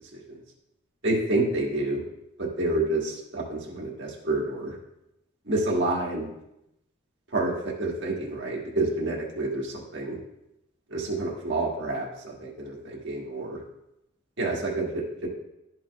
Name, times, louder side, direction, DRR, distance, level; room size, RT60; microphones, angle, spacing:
voice 1, 1.0-2.0 2.4-4.8 5.5-6.3 7.3-7.5 7.8-10.2 10.9-13.6 14.4-15.3, right 2 dB, 55° right, -2 dB, 1.6 m, -28 dB
12.5 x 4.8 x 2.4 m, 0.86 s
head